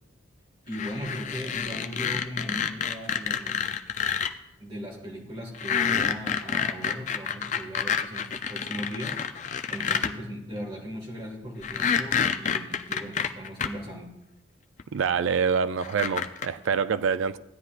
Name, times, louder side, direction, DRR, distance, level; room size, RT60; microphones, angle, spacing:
sound 1, 0.7-4.3 5.5-10.1 11.6-13.7 14.8-14.9 15.8-16.5, left 7 dB, 35° left, 0.4 m, -28 dB
voice 1, 0.7-3.8 4.6-9.2 9.7-14.1, equal, 25° right, 1.6 m, -38 dB
voice 2, 14.9-17.4, right 6 dB, 80° right, 0.4 m, -26 dB
15.5 x 9.6 x 2.5 m
head